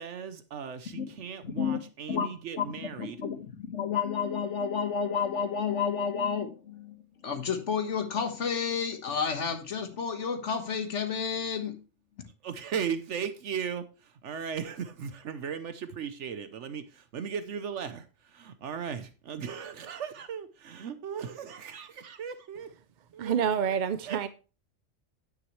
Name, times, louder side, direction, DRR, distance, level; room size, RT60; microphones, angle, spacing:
voice 1, 0.0-3.2 12.4-22.7 23.1-23.5 24.0-24.2, right 7 dB, 75° right, 1.1 m, -37 dB
voice 2, 1.4-1.8 2.1-2.3 2.6-2.7 3.0-11.8, left 6 dB, 75° left, 1.7 m, -31 dB
voice 3, 23.2-24.3, right 8 dB, 55° right, 0.5 m, -27 dB
9.9 x 9.0 x 3.1 m
omnidirectional pair, 1.2 m